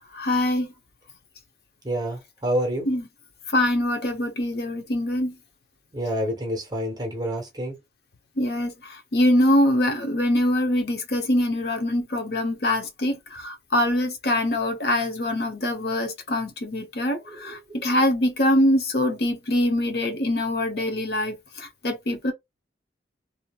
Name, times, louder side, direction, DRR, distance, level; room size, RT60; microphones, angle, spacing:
voice 1, 0.1-0.7 2.9-3.0 3.5-5.3 8.4-22.3, left 1 dB, 60° left, 0.7 m, -24 dB
voice 2, 1.8-2.9 5.9-7.8 17.3-17.8, equal, 20° right, 0.9 m, -28 dB
2.8 x 2.7 x 2.3 m
head